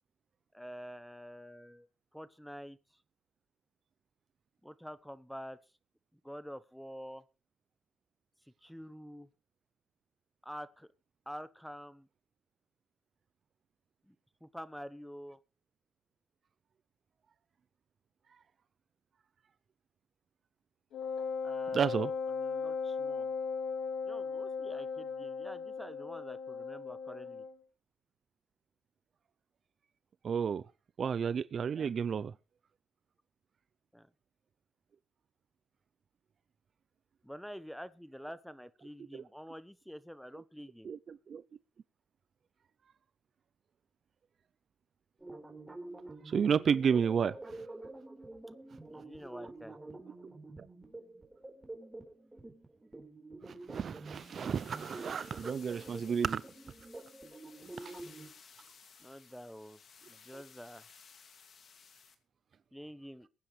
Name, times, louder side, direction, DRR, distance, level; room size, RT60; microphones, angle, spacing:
voice 1, 0.5-2.8 4.6-5.6 6.1-7.2 8.6-9.3 10.4-10.9 11.3-12.1 14.1-14.2 14.4-15.4 21.4-22.0 22.3-23.3 24.0-27.5 31.7-31.9 33.9-34.1 37.2-40.9 48.9-49.7 59.0-59.8 60.1-60.8 62.7-63.3, equal, ahead, 1.1 m, -47 dB
Wind instrument woodwind instrument, 20.9-27.6, left 5 dB, 70° left, 1.3 m, -37 dB
voice 2, 21.7-22.1 30.2-30.6 31.0-32.3 39.1-39.2 40.8-41.4 46.3-47.4 53.4-56.4 57.8-57.9, right 7 dB, 50° right, 0.6 m, -31 dB
sound 1, 45.2-58.3, right 2 dB, 15° right, 4.2 m, -48 dB
sound 2, 54.1-62.2, left 6 dB, 55° left, 2.4 m, -58 dB
22.5 x 9.6 x 3.3 m
cardioid pair, 90°, 0 cm